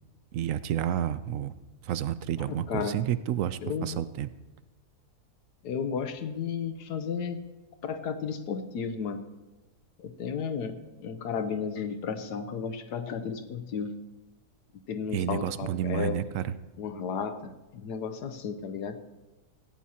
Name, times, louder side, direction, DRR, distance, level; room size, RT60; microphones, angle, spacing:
voice 1, 0.3-1.5 1.8-4.3 15.1-16.4, right 10 dB, 65° right, 14 dB, 0.8 m, -30 dB
voice 2, 2.5-3.0 3.6-4.0 5.6-7.4 7.8-9.2 10.0-14.0 14.9-16.2 16.8-19.1, left 6 dB, 85° left, 9 dB, 1.4 m, -33 dB
17.5 x 15.5 x 2.9 m, 1.1 s
omnidirectional pair, 1.7 m